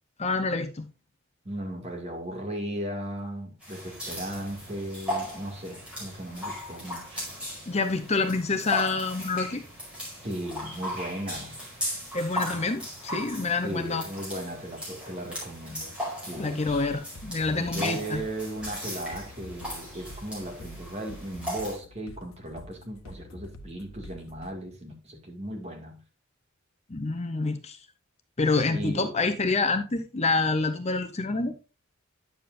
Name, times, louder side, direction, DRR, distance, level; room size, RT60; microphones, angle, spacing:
voice 1, 0.2-0.9 7.7-9.6 12.1-14.0 16.4-18.2 26.9-27.8 28.4-31.5, left 3 dB, 30° left, 0.7 m, -27 dB
voice 2, 1.4-7.3 10.2-11.6 13.6-16.0 16.2-16.6 17.6-26.0 28.7-29.1, right 1 dB, 30° right, 2.1 m, -36 dB
sound 1, 3.6-21.8, equal, 5° right, 5.2 m, -37 dB
sound 2, 16.7-24.5, left 1 dB, 75° left, 1.1 m, -46 dB
10.0 x 7.4 x 2.5 m
head